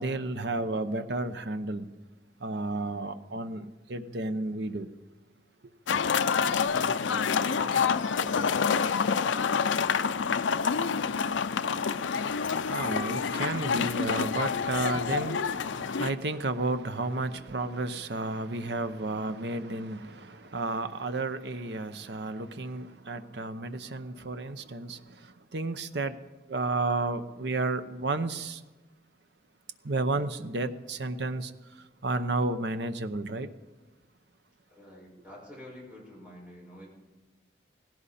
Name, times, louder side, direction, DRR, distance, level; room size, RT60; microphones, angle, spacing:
voice 1, 0.0-1.9 2.4-4.9 11.9-26.2 26.5-28.6 29.8-33.5, right 2 dB, 60° right, 0.8 m, -32 dB
sound 1, 5.9-16.1, left 6 dB, 80° left, 0.5 m, -27 dB
voice 2, 6.6-11.2 34.7-36.9, left 1 dB, 10° right, 5.7 m, -48 dB
18.0 x 16.5 x 4.2 m
head